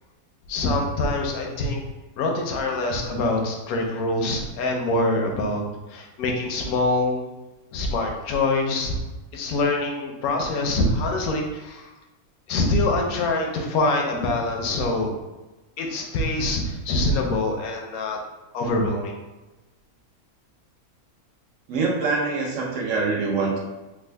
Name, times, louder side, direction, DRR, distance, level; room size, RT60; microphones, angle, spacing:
voice 1, 0.5-1.8 2.2-5.6 5.9-7.2 7.7-8.9 9.3-11.8 12.5-15.1 15.8-18.2 18.5-19.2, left 2 dB, 80° left, 1 dB, 1.1 m, -24 dB
voice 2, 21.7-23.6, right 4 dB, 65° right, -1 dB, 1.1 m, -24 dB
3.5 x 2.2 x 3.3 m, 1.1 s
omnidirectional pair, 1.5 m